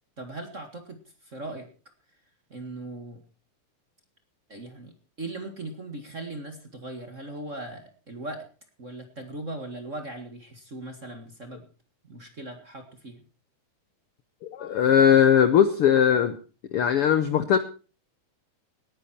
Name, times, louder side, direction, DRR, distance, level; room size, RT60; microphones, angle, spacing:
voice 1, 0.2-1.7 2.5-3.2 4.5-8.5 8.8-11.6 12.0-13.2, right 2 dB, 30° right, 6 dB, 1.7 m, -39 dB
voice 2, 14.4-16.3 16.7-17.6, left 8 dB, 70° left, 11 dB, 1.4 m, -19 dB
19.0 x 10.5 x 4.4 m, 0.36 s
omnidirectional pair, 3.7 m